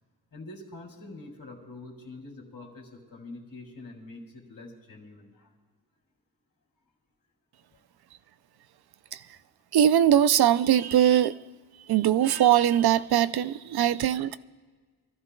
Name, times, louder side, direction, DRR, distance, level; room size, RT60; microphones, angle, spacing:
voice 1, 0.3-5.5 7.7-7.8, left 2 dB, 55° left, 0 dB, 2.8 m, -45 dB
voice 2, 9.7-11.3 11.9-14.4, right 10 dB, 65° right, 14 dB, 0.5 m, -21 dB
25.0 x 14.0 x 2.2 m, 1.4 s
wide cardioid pair, 135°, 41 cm